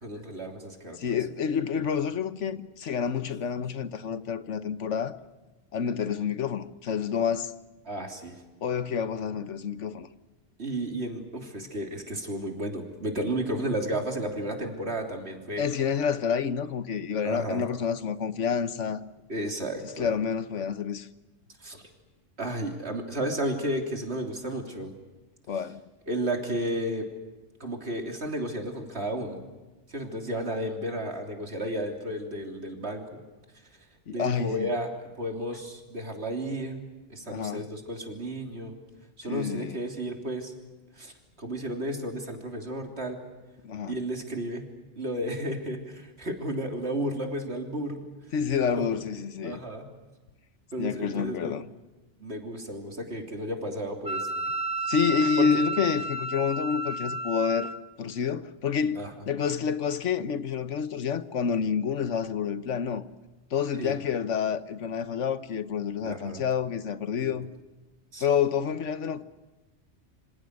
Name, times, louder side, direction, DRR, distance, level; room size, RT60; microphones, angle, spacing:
voice 1, 0.0-1.2 7.9-8.4 10.6-15.7 17.2-17.7 19.3-20.1 21.6-21.8 22.4-24.9 26.1-27.1 27.6-29.4 29.9-33.2 34.1-36.8 37.1-38.8 39.2-40.5 41.0-43.2 43.9-44.7 45.0-48.0 48.8-48.9 49.4-49.9 50.7-51.6 52.2-54.3 55.4-55.5 59.0-59.1 63.8-64.0 66.0-66.4 67.2-67.4 68.1-68.3, right 1 dB, 65° right, 3.6 m, -33 dB
voice 2, 1.0-5.2 5.7-7.5 8.6-10.1 15.6-19.0 20.0-21.1 25.5-25.8 34.1-34.7 37.3-37.6 39.3-39.8 43.6-44.0 48.3-49.6 50.8-51.7 54.8-57.7 58.0-63.1 63.5-67.5 68.2-69.2, left 7 dB, 90° left, 1.4 m, -28 dB
Wind instrument woodwind instrument, 54.1-57.8, right 2 dB, 10° left, 0.8 m, -31 dB
27.5 x 25.5 x 6.5 m
omnidirectional pair, 1.2 m